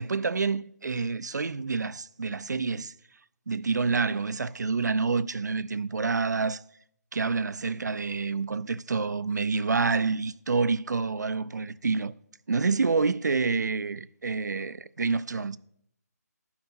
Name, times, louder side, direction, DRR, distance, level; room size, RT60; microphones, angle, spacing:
voice 1, 0.0-2.9 3.5-6.6 7.1-12.1 12.5-15.6, right 4 dB, 85° right, 0.4 m, -28 dB
12.0 x 5.6 x 4.4 m
figure-of-eight pair, 160°, 9 cm